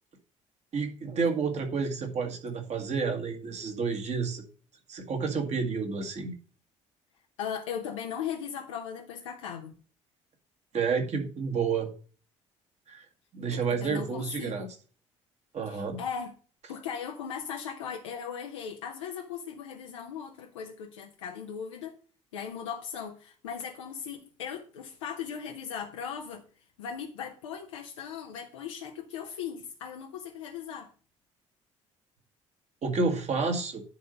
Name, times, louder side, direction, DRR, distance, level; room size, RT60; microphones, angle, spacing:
voice 1, 0.7-4.4 4.9-6.3 10.7-11.9 12.9-13.1 13.3-14.7 15.5-16.0 32.8-33.8, right 5 dB, 45° right, 1.8 m, -30 dB
voice 2, 7.4-9.7 13.5-14.7 15.7-16.3 16.7-22.0 22.3-26.4 26.8-30.9, left 7 dB, 75° left, 0.7 m, -38 dB
9.9 x 3.8 x 5.2 m
figure-of-eight pair, 50°, 16 cm